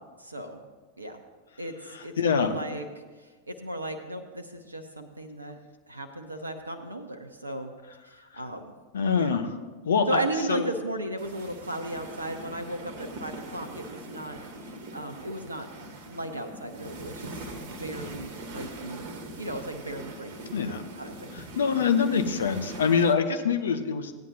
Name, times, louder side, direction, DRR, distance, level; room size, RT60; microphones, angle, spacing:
voice 1, 0.2-0.6 1.0-1.2 1.6-1.8 2.0-2.8 3.2-5.6 5.9-7.7 8.0-8.7 9.2-9.3 10.1-14.4 14.9-17.3 17.6-19.1 19.4-21.3, right 1 dB, 80° right, 7 dB, 0.8 m, -36 dB
voice 2, 1.9-2.5 8.3-8.4 8.9-9.5 9.8-10.2 10.5-10.6 20.5-20.8 21.3-24.1, left 6 dB, 65° left, 7 dB, 0.8 m, -25 dB
sound 1, 11.2-23.1, right 1 dB, 50° right, 1.2 m, -42 dB
16.0 x 9.3 x 2.8 m, 1.4 s
figure-of-eight pair, 90°, 0 cm